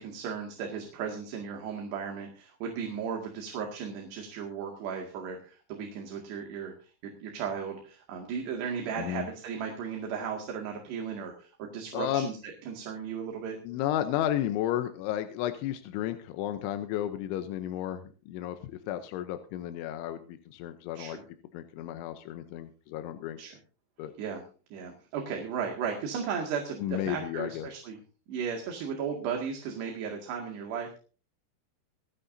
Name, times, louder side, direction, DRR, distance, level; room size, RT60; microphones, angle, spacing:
voice 1, 0.0-12.4 12.6-13.6 20.9-21.2 23.4-23.6 24.2-24.4 24.7-28.0 28.3-31.0, right 6 dB, 65° right, 2 dB, 4.1 m, -35 dB
voice 2, 8.9-9.3 11.9-12.3 13.6-21.2 21.5-23.4 24.0-24.1 26.8-27.7, left 12 dB, 85° left, 8 dB, 3.2 m, -33 dB
28.0 x 9.7 x 2.7 m, 0.37 s
omnidirectional pair, 5.4 m